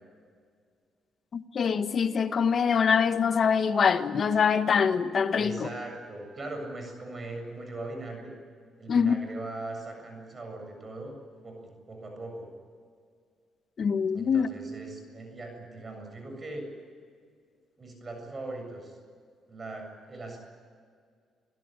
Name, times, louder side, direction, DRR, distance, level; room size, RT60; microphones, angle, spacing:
voice 1, 1.3-5.7 8.9-9.2 13.8-14.5, left 6 dB, 50° left, 1.4 m, -24 dB
voice 2, 5.3-8.3 8.8-11.2 11.4-12.5 14.1-16.7 17.8-19.0 19.5-20.4, right 2 dB, 35° right, 7.3 m, -40 dB
27.5 x 17.0 x 10.0 m
cardioid pair, 90°, 0 cm